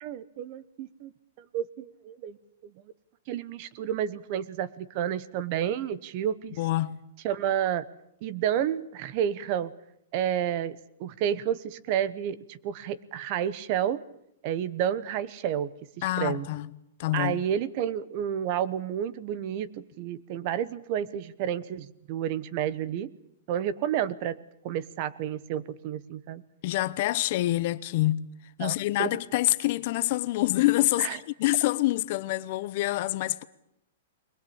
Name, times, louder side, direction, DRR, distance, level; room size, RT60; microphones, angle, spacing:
voice 1, 0.0-1.1 1.4-2.4 3.3-6.6 7.2-7.8 8.2-9.7 10.1-14.0 14.4-15.7 16.2-16.5 17.1-23.1 23.5-24.4 24.6-26.4 28.6-29.2 31.0-31.2, right 10 dB, 35° right, 1.0 m, -30 dB
voice 2, 6.6-7.0 16.0-16.7 17.0-17.4 26.6-33.4, left 17 dB, 40° left, 0.9 m, -26 dB
22.0 x 20.5 x 8.7 m
hypercardioid pair, 165°, 0 cm